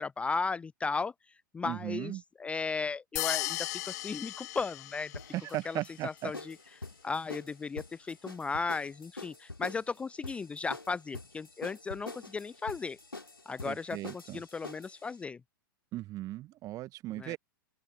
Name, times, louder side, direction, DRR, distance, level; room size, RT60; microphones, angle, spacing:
voice 1, 0.0-5.1 5.7-6.6 7.0-13.0 13.5-15.4 17.2-17.4, left 4 dB, 10° left, 0.5 m, -36 dB
voice 2, 1.6-2.2 5.3-6.3 13.6-14.4 15.9-17.4, right 16 dB, 30° right, 1.0 m, -37 dB
sound 1, 3.2-5.4, left 18 dB, 45° left, 0.9 m, -36 dB
sound 2, 5.1-15.0, left 3 dB, 85° left, 2.9 m, -46 dB
open air
figure-of-eight pair, 100°, 12 cm